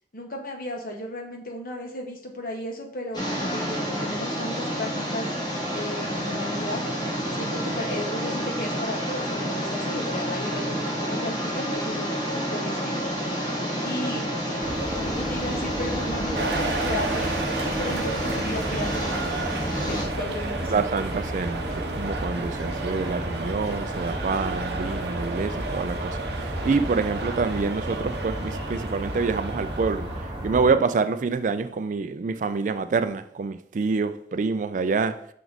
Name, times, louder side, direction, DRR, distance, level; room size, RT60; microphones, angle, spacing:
voice 1, 0.1-5.3 5.7-6.8 7.3-14.2 15.0-20.9, left 1 dB, 55° left, 1.2 m, -35 dB
sound 1, 3.1-20.0, equal, 25° left, 1.5 m, -29 dB
sound 2, 14.6-30.7, equal, 25° right, 1.1 m, -33 dB
sound 3, 16.3-30.5, right 3 dB, 65° right, 0.8 m, -34 dB
voice 2, 20.7-30.1 30.4-35.1, right 4 dB, 45° right, 0.3 m, -26 dB
6.0 x 4.6 x 4.0 m
head